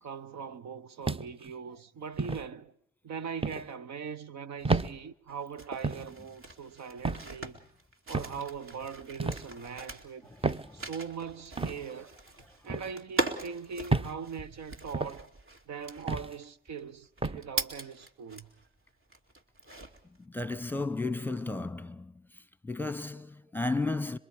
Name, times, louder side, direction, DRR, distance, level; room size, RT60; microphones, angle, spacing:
voice 1, 0.0-2.7 3.0-7.6 8.1-10.3 10.7-12.2 12.6-15.3 15.7-18.5, right 6 dB, 65° right, 1.0 m, -41 dB
sound 1, 1.0-1.5 2.2-2.4 3.4-3.7 4.6-4.9 5.8-6.1 7.0-7.3 8.1-8.4 9.2-9.5 10.4-10.7 11.6-11.8 12.7-12.9 13.9-14.2 14.9-15.2 16.1-16.3 17.2-17.4, right 3 dB, 20° right, 0.7 m, -30 dB
sound 2, 5.3-18.7 19.1-20.2, right 2 dB, 45° right, 2.5 m, -40 dB
voice 2, 20.2-22.1 22.6-24.2, left 3 dB, 5° left, 1.1 m, -33 dB
26.0 x 22.5 x 5.0 m
supercardioid pair, 60°, 29 cm